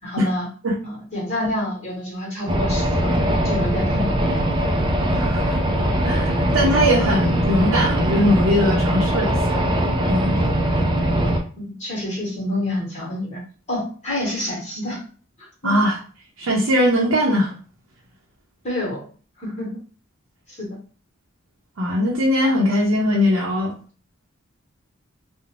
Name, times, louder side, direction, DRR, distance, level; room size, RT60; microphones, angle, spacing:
voice 1, 0.0-0.5 0.8-3.1 3.4-4.3 11.6-13.4 13.7-15.0 15.6-15.7 18.6-19.1 19.4-19.7 20.5-20.8, left 1 dB, 35° left, -4 dB, 1.1 m, -28 dB
sound 1, 2.5-11.4, right 1 dB, 25° right, 0.4 m, -21 dB
voice 2, 5.1-5.6 6.0-9.6 10.1-10.4 15.6-16.0 16.4-17.5 21.8-23.7, left 1 dB, 80° right, -4 dB, 0.6 m, -20 dB
2.5 x 2.1 x 3.0 m, 0.39 s
head